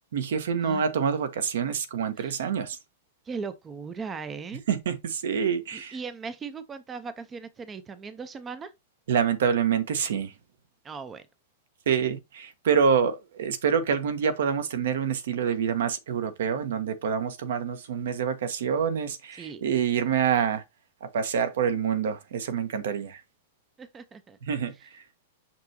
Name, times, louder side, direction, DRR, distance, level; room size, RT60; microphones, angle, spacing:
voice 1, 0.1-2.8 4.7-6.0 9.1-10.3 11.9-20.6 21.0-23.2 24.5-25.0, right 7 dB, 75° right, 1.2 m, -26 dB
voice 2, 3.3-4.6 5.7-8.7 10.8-11.2 19.4-19.6 23.8-24.4, right 5 dB, 15° right, 0.4 m, -38 dB
5.9 x 5.8 x 2.9 m
supercardioid pair, 165°, 0 cm